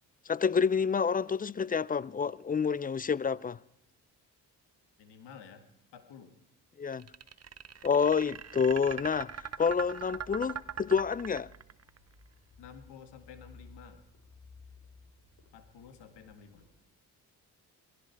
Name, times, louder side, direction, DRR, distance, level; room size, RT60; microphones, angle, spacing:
voice 1, 0.3-3.6 6.8-7.1 7.8-11.5, left 6 dB, 20° left, 0.5 m, -28 dB
voice 2, 5.0-5.7 5.9-6.3 12.6-14.1 15.5-16.7, left 7 dB, 85° left, 2.0 m, -51 dB
sound 1, 6.9-12.0, right 7 dB, 40° right, 0.9 m, -41 dB
sound 2, 8.4-16.7, left 3 dB, 45° left, 4.3 m, -57 dB
19.0 x 16.5 x 4.6 m
supercardioid pair, 55°, 40 cm